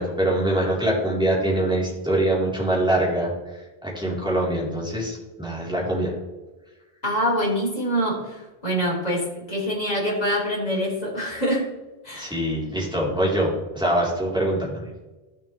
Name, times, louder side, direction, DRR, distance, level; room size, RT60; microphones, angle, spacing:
voice 1, 0.0-6.1 12.2-14.8, right 1 dB, 5° right, -6 dB, 3.7 m, -24 dB
voice 2, 7.0-11.7 12.0-12.4, equal, 40° left, -4 dB, 3.5 m, -25 dB
14.0 x 6.9 x 3.3 m, 1.2 s
omnidirectional pair, 1.0 m